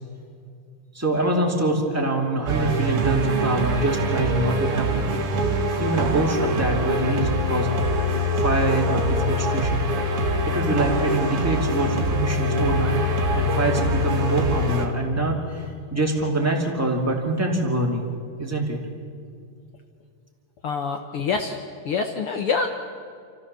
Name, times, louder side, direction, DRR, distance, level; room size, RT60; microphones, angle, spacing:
voice 1, 0.9-5.2 5.8-7.7 8.0-9.8 10.1-13.0 13.3-18.0 18.4-18.8, right 2 dB, 5° right, -1 dB, 2.1 m, -25 dB
sound 1, 2.5-14.9, equal, 50° right, 2.3 m, -24 dB
voice 2, 20.6-21.6 21.8-22.7, left 5 dB, 70° left, 5 dB, 1.4 m, -25 dB
28.5 x 14.5 x 6.9 m, 2.3 s
omnidirectional pair, 3.8 m